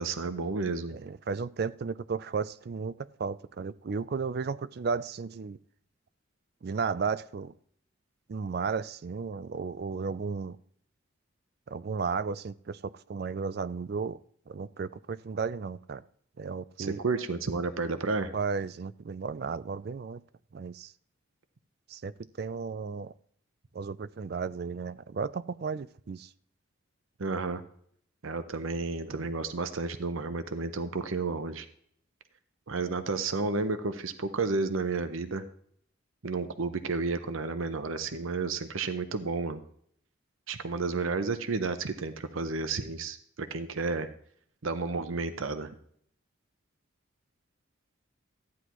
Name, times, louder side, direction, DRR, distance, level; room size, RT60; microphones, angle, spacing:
voice 1, 0.0-1.0 16.8-18.3 27.2-27.6 28.2-31.7 32.7-35.5 36.2-39.6 40.5-44.1 44.6-45.7, right 3 dB, 75° right, 9 dB, 0.8 m, -31 dB
voice 2, 0.9-5.6 6.6-7.5 8.3-10.6 11.7-14.2 14.5-16.0 16.4-17.0 18.3-20.2 20.5-20.9 21.9-23.1 23.7-26.3 29.0-29.2, right 5 dB, 50° right, 16 dB, 0.4 m, -34 dB
14.5 x 9.8 x 3.0 m, 0.64 s
head